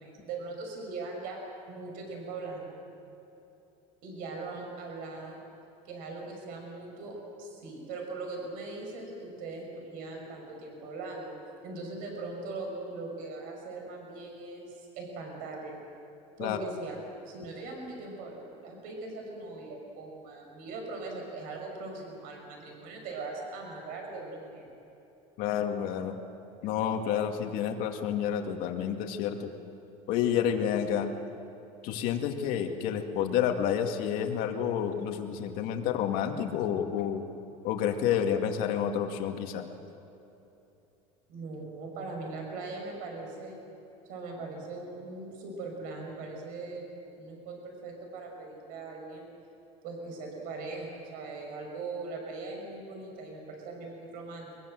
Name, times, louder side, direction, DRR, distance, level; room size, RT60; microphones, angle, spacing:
voice 1, 0.0-1.4 1.7-2.8 4.0-5.4 5.9-11.4 11.6-15.8 16.4-17.0 17.3-24.7 41.3-43.6 44.1-46.8 47.2-49.3 49.8-54.5, right 3 dB, 60° right, 1 dB, 6.0 m, -40 dB
voice 2, 25.4-26.2 26.6-29.5 30.1-31.2 31.8-37.3 37.6-39.7, left 9 dB, 60° left, 4 dB, 2.3 m, -29 dB
23.0 x 22.0 x 7.8 m, 2.9 s
cardioid pair, 150°, 16 cm